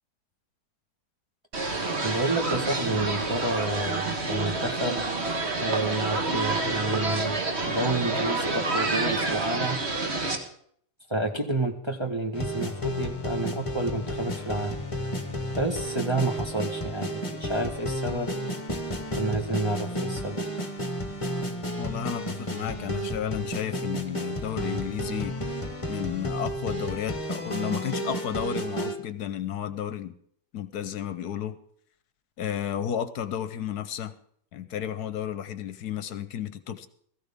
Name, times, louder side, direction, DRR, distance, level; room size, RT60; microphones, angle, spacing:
sound 1, 1.5-10.4, right 3 dB, 40° right, 1.8 m, -28 dB
voice 1, 2.0-5.0 5.6-7.4 7.6-9.8 11.1-14.8 15.6-18.3 19.1-20.4, right 2 dB, 20° right, 1 dB, 1.1 m, -29 dB
sound 2, 12.3-29.0, equal, 20° left, 1.3 m, -32 dB
voice 2, 21.8-25.3 25.9-30.1 30.5-31.6 32.4-34.1 34.5-36.9, left 9 dB, 75° left, 13 dB, 1.2 m, -32 dB
16.5 x 15.0 x 3.6 m, 0.63 s
omnidirectional pair, 1.8 m